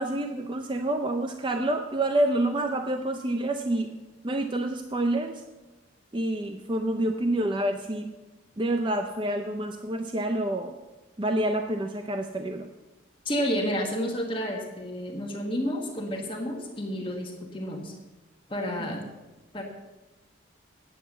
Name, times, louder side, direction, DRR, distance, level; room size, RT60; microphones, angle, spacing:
voice 1, 0.0-3.9 4.2-5.4 6.1-8.1 8.6-10.8 11.2-12.7, right 1 dB, 25° right, 5 dB, 0.5 m, -28 dB
voice 2, 13.2-17.9 18.5-19.1 19.5-19.6, equal, 25° left, 1 dB, 1.3 m, -30 dB
9.5 x 8.1 x 7.1 m, 1.1 s
head